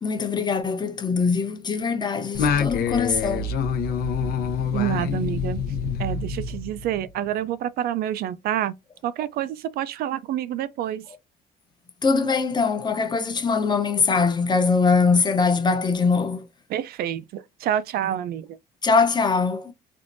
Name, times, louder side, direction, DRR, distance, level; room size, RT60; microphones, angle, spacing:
voice 1, 0.0-3.5 12.0-16.5 18.8-19.7, left 4 dB, 25° left, 0.7 m, -22 dB
Singing, 2.3-7.1, left 6 dB, 65° left, 0.7 m, -26 dB
voice 2, 4.7-5.6 6.0-8.7 9.0-11.0 16.7-18.5, right 11 dB, 65° right, 0.4 m, -27 dB
3.4 x 2.5 x 2.5 m
cardioid pair, 110°, 17 cm